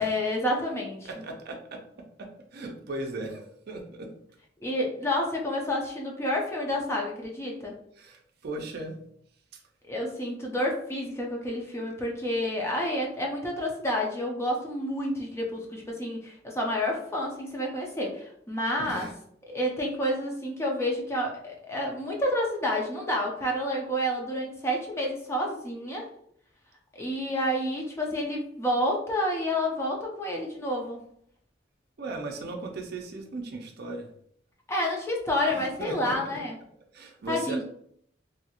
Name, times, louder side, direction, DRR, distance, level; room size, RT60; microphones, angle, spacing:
voice 1, 0.0-1.1 4.6-7.8 9.9-19.1 19.5-26.1 26.9-31.0 34.7-36.6 37.3-37.6, left 1 dB, 15° left, -1 dB, 0.5 m, -29 dB
voice 2, 1.0-1.8 2.2-4.1 8.0-9.0 18.8-19.1 32.0-34.1 35.5-36.2 36.9-37.6, right 2 dB, 55° right, 3 dB, 0.5 m, -37 dB
2.7 x 2.4 x 2.8 m, 0.67 s
head